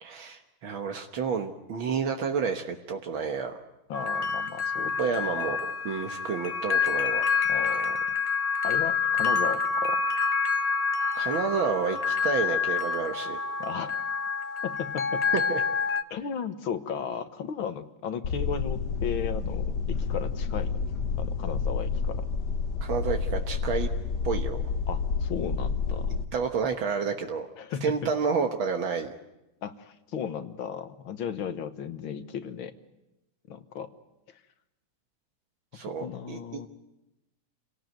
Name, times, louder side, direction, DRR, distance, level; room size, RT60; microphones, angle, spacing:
voice 1, 0.0-3.6 5.0-5.6 5.9-7.3 11.1-13.4 15.3-15.6 22.8-23.9 24.2-24.6 26.3-27.5 27.8-29.2 35.7-36.6, right 5 dB, 70° right, 4 dB, 2.1 m, -30 dB
voice 2, 3.9-5.5 7.5-8.0 8.6-10.0 13.6-14.0 14.6-15.3 16.1-20.9 21.2-22.2 24.9-26.2 27.6-28.0 29.6-32.7 33.5-33.9 35.8-36.7, left 7 dB, 75° left, 10 dB, 2.0 m, -35 dB
sound 1, 3.9-16.0, left 5 dB, 30° left, 0.7 m, -27 dB
sound 2, 18.2-26.2, left 5 dB, 55° left, 1.6 m, -29 dB
28.0 x 18.0 x 9.2 m, 0.96 s
omnidirectional pair, 2.3 m